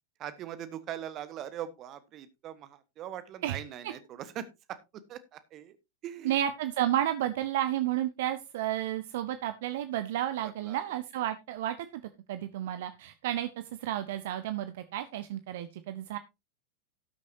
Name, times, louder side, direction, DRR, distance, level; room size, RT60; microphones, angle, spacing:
voice 1, 0.2-5.8 6.0-6.4 10.4-10.8, right 10 dB, 35° right, 13 dB, 1.4 m, -41 dB
voice 2, 3.4-3.9 6.2-12.0 12.3-13.5 13.8-16.2, right 12 dB, 55° right, 10 dB, 0.8 m, -32 dB
18.0 x 6.3 x 2.8 m, 0.25 s
figure-of-eight pair, 90°, 0 cm